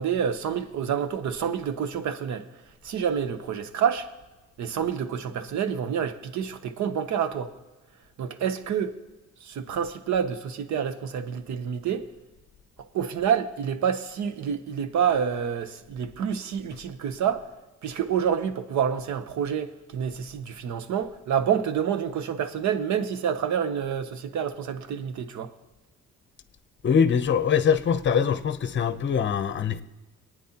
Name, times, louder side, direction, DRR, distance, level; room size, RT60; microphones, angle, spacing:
voice 1, 0.0-2.5 2.8-4.1 4.6-7.5 8.2-8.9 9.4-12.1 12.9-17.4 17.8-25.5, right 8 dB, 70° right, 0.9 m, -28 dB
voice 2, 26.8-29.8, left 7 dB, 40° left, 0.8 m, -23 dB
23.5 x 9.3 x 2.9 m
cardioid pair, 90°, 30 cm